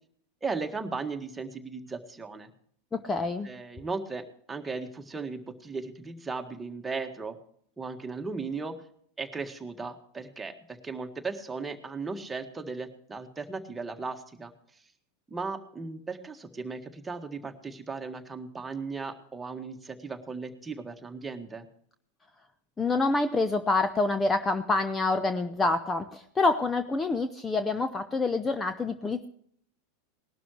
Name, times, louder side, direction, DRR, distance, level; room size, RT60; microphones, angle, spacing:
voice 1, 0.4-2.5 3.4-7.4 7.8-8.8 9.2-14.5 15.3-21.7, right 4 dB, 10° right, 5 dB, 1.7 m, -36 dB
voice 2, 2.9-3.5 22.8-29.3, left 3 dB, 15° left, 10 dB, 0.8 m, -27 dB
19.5 x 12.0 x 3.2 m, 0.63 s
figure-of-eight pair, 90°, 0 cm